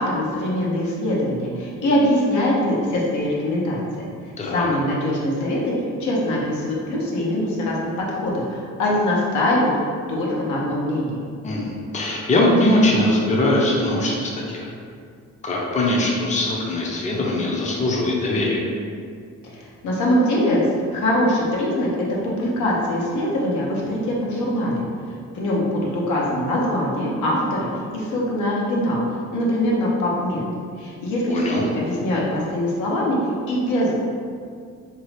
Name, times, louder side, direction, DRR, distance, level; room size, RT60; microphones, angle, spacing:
voice 1, 0.0-4.1 4.5-5.7 6.0-9.7 10.1-11.2 19.8-20.6 20.9-24.8 25.3-27.7 27.9-29.0 29.3-30.4 30.8-33.2 33.5-34.0, left 1 dB, 75° left, -4 dB, 0.7 m, -22 dB
voice 2, 4.4-4.7 11.4-14.7 15.4-18.6 31.3-31.6, left 1 dB, 25° left, -4 dB, 0.6 m, -21 dB
2.7 x 2.4 x 3.1 m, 2.2 s
cardioid pair, 90°, 30 cm